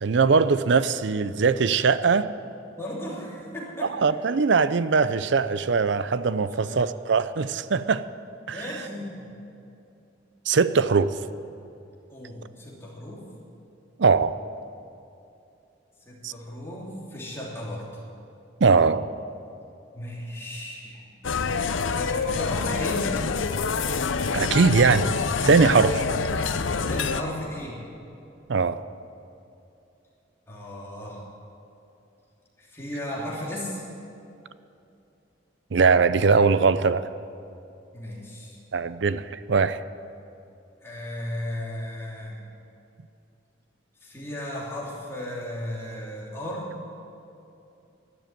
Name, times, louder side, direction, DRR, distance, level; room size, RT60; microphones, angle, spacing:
voice 1, 0.0-2.3 3.8-8.0 8.5-8.7 10.5-11.1 14.0-14.3 16.2-16.3 18.6-19.1 24.3-25.1 25.5-26.0 28.5-28.8 35.7-37.1 38.7-39.8, right 5 dB, 65° right, 14 dB, 0.5 m, -21 dB
voice 2, 2.8-3.9 6.4-6.8 8.5-9.3 12.1-13.2 16.0-17.8 19.9-21.1 21.9-23.1 26.9-27.8 30.5-31.2 32.6-33.8 37.9-38.6 40.8-42.4 44.0-46.7, left 1 dB, 15° left, -5 dB, 3.1 m, -35 dB
sound 1, 21.2-27.2, left 5 dB, 80° left, 0.6 m, -26 dB
12.0 x 12.0 x 9.1 m, 2.7 s
head